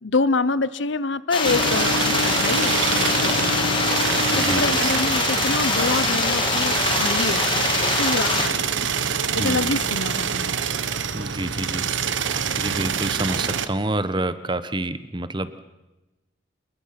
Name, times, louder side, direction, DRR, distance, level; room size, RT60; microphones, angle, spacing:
voice 1, 0.0-3.8 4.4-8.7 9.3-10.4, left 3 dB, 75° left, 17 dB, 0.8 m, -26 dB
sound 1, 1.3-8.5, left 4 dB, 25° left, 2.9 m, -23 dB
sound 2, 1.4-13.7, right 5 dB, 80° right, 1.3 m, -25 dB
voice 2, 4.3-4.8 9.4-9.8 11.1-11.9 12.6-15.6, right 2 dB, 25° right, 13 dB, 1.1 m, -28 dB
27.0 x 22.0 x 5.9 m, 1.1 s
head